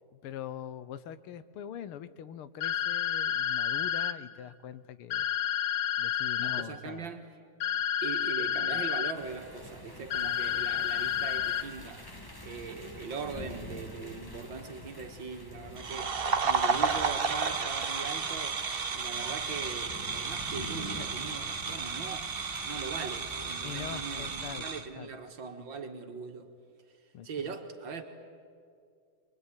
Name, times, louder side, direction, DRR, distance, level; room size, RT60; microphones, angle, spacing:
voice 1, 0.1-5.3 6.0-7.1 23.6-25.1 27.1-27.6, left 10 dB, 90° left, 1.8 m, -43 dB
sound 1, 2.6-4.1 5.1-6.6 7.6-9.1 10.1-11.6, left 9 dB, 60° left, 1.3 m, -30 dB
voice 2, 6.4-7.2 8.0-12.1 12.4-18.6 18.9-26.5 27.2-28.0, right 5 dB, 60° right, 2.4 m, -40 dB
sound 2, 9.1-24.6, left 1 dB, 10° left, 1.4 m, -47 dB
sound 3, 15.8-24.9, right 5 dB, 40° right, 0.9 m, -32 dB
23.0 x 23.0 x 9.9 m
omnidirectional pair, 2.3 m